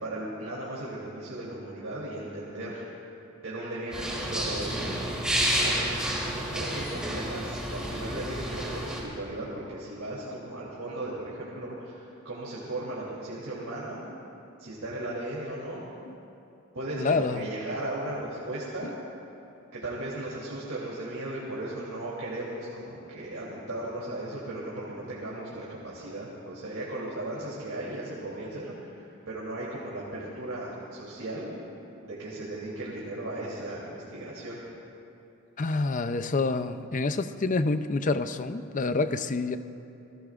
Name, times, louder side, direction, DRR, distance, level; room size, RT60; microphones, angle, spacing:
voice 1, 0.0-2.8 3.4-14.1 14.6-15.8 16.7-19.0 19.7-31.5 32.0-34.6, right 1 dB, 75° right, -6 dB, 3.2 m, -36 dB
sound 1, 3.9-9.0, right 1 dB, 5° right, 3.2 m, -30 dB
voice 2, 17.0-17.5 18.8-18.9 35.6-39.6, left 3 dB, 35° left, 10 dB, 0.5 m, -27 dB
28.5 x 19.0 x 2.5 m, 2.8 s
head